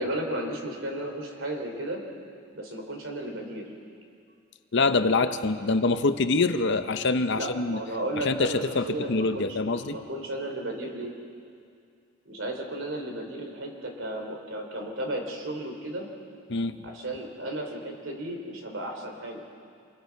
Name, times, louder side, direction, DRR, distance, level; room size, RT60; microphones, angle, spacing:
voice 1, 0.0-2.0 2.5-3.7 7.3-11.1 12.2-16.1 16.8-19.4, right 1 dB, 65° right, 2 dB, 3.3 m, -34 dB
voice 2, 4.7-7.8 8.2-10.0 16.5-16.8, left 3 dB, 55° left, 10 dB, 0.8 m, -25 dB
27.5 x 21.0 x 4.7 m, 2.3 s
head